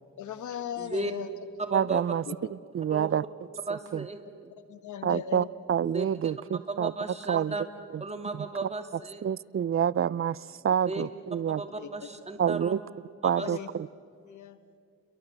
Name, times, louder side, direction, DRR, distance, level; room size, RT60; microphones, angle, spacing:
voice 1, 0.2-1.3 2.3-2.4 4.7-5.5 7.3-7.4 10.9-11.1 11.5-11.9 13.4-13.7 14.3-14.6, left 10 dB, 80° left, 11 dB, 1.6 m, -38 dB
voice 2, 0.8-1.1 1.6-2.1 2.9-3.1 3.7-4.5 5.8-6.3 6.7-7.6 8.0-9.2 10.9-11.0 11.5-12.7 13.2-13.5, right 2 dB, 20° right, 5 dB, 2.7 m, -35 dB
voice 3, 1.7-2.2 2.5-3.2 3.7-4.1 5.0-6.9 7.3-7.5 7.9-8.0 8.3-8.7 9.2-11.6 12.4-12.8 13.2-13.9, right 8 dB, 45° right, 21 dB, 0.6 m, -28 dB
30.0 x 22.5 x 8.0 m, 2.2 s
cardioid pair, 70°, 30 cm